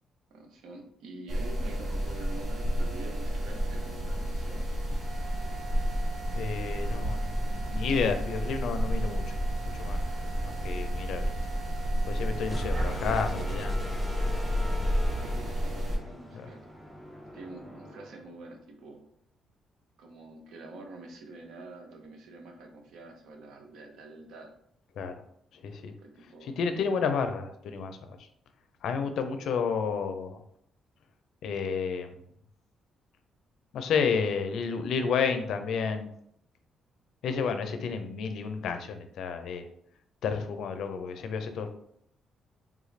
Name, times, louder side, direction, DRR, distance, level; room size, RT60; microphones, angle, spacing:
voice 1, 0.3-4.7 7.3-7.8 12.8-13.6 15.1-16.6 17.3-19.1 20.0-24.5 26.0-26.6, right 2 dB, 80° right, 3 dB, 0.6 m, -47 dB
sound 1, 1.3-16.0, equal, 45° right, 0.9 m, -31 dB
voice 2, 6.4-9.2 9.7-10.0 10.4-11.3 12.1-13.7 16.3-16.5 25.0-25.1 25.6-25.9 26.4-28.2 28.8-30.4 31.4-32.2 33.7-36.1 37.2-39.7 40.2-41.7, left 5 dB, 75° left, 8 dB, 0.4 m, -31 dB
sound 2, 12.4-18.2, left 1 dB, 5° right, 0.5 m, -35 dB
3.5 x 2.4 x 3.2 m, 0.70 s
cardioid pair, 90°, 0 cm